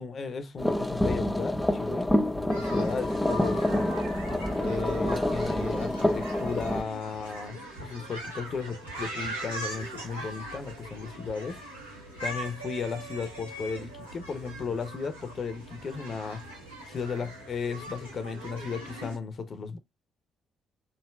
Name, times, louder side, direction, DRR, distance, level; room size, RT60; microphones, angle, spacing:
voice 1, 0.0-3.8 4.5-11.5 12.2-16.5 16.9-19.8, left 5 dB, 45° left, 0.7 m, -35 dB
sound 1, 0.6-6.8, left 1 dB, 5° left, 0.6 m, -27 dB
sound 2, 2.5-19.2, right 1 dB, 85° right, 1.3 m, -41 dB
4.9 x 2.6 x 2.2 m
figure-of-eight pair, 45°, 0 cm